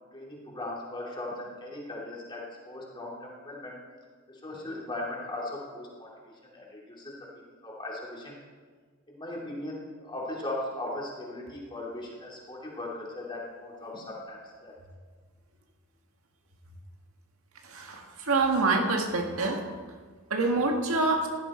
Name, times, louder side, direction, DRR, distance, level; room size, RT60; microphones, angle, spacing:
voice 1, 0.1-3.7 4.3-7.1 7.6-8.4 9.1-14.7, left 1 dB, 25° left, -3 dB, 2.9 m, -38 dB
voice 2, 17.7-19.6 20.3-21.3, right 3 dB, 85° right, 2 dB, 1.8 m, -26 dB
16.0 x 11.5 x 4.4 m, 1.5 s
head